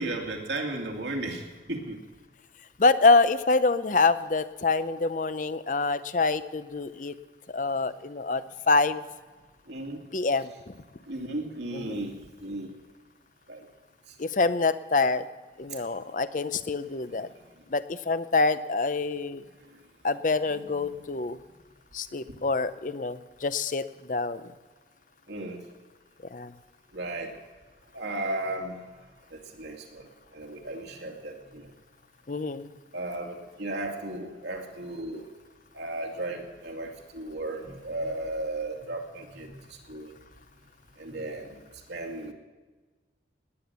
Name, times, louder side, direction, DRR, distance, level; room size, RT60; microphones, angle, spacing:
voice 1, 0.0-2.0 9.7-10.0 11.1-12.7 13.5-13.6 20.5-20.9 25.3-25.6 26.9-27.3 27.9-28.8 29.3-30.1 30.3-31.7 32.9-35.3 35.7-39.6 39.9-40.1 41.0-41.6 41.9-42.3, right 2 dB, 80° right, 1 dB, 2.5 m, -35 dB
voice 2, 2.8-7.1 7.5-9.0 10.1-10.7 11.7-12.1 14.2-15.3 15.6-17.3 17.7-19.4 20.0-21.4 21.9-24.4 26.3-26.5 32.3-32.7, left 3 dB, 45° left, 13 dB, 0.6 m, -26 dB
19.5 x 9.9 x 6.9 m, 1.3 s
head